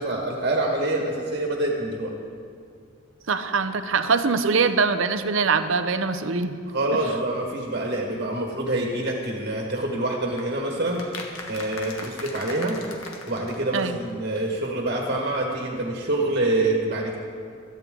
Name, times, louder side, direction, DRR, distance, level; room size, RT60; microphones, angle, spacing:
voice 1, 0.0-2.1 6.7-11.1 11.5-12.8 13.3-17.2, right 2 dB, 45° right, 0 dB, 1.6 m, -26 dB
voice 2, 3.3-6.6 13.7-14.0, right 4 dB, 65° right, 9 dB, 0.7 m, -23 dB
sound 1, 10.4-14.1 14.4-14.5 14.6-14.7 14.9-15.0, left 3 dB, 80° left, 1.5 m, -39 dB
16.5 x 13.5 x 3.8 m, 2.2 s
head